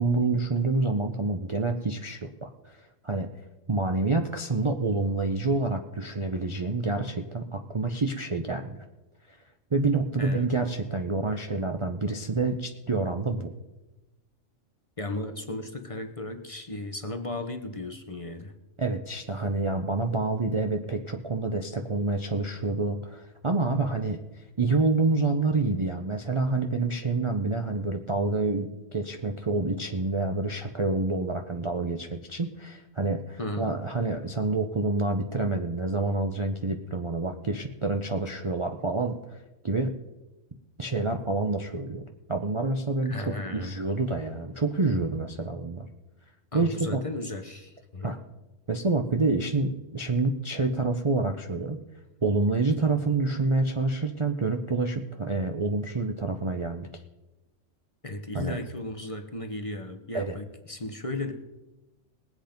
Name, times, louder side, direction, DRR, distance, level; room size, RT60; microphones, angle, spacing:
voice 1, 0.0-3.3 3.7-8.8 9.3-9.4 9.7-13.5 18.8-24.2 24.6-39.9 40.8-42.0 42.3-45.9 46.5-47.0 48.0-48.2 48.7-51.8 52.2-56.9 58.3-58.6 60.1-60.4, right 3 dB, 30° right, 4 dB, 0.6 m, -27 dB
voice 2, 15.0-18.5 33.4-33.7 43.0-43.7 46.5-48.1 58.0-61.3, left 2 dB, 30° left, 6 dB, 0.9 m, -35 dB
20.0 x 7.9 x 5.2 m, 1.0 s
omnidirectional pair, 1.4 m